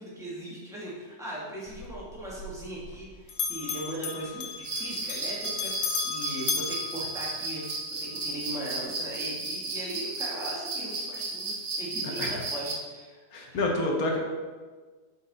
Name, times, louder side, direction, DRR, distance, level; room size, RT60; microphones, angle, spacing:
voice 1, 0.0-13.2 13.5-13.6, right 1 dB, ahead, -7 dB, 1.5 m, -39 dB
Bell, 1.7-3.0 3.3-7.8, left 6 dB, 75° left, 1.3 m, -35 dB
sound 1, 4.6-12.7, right 3 dB, 70° right, 1.5 m, -34 dB
voice 2, 13.3-14.2, left 2 dB, 60° left, 0 dB, 1.3 m, -28 dB
6.1 x 4.5 x 4.0 m, 1.4 s
omnidirectional pair, 1.8 m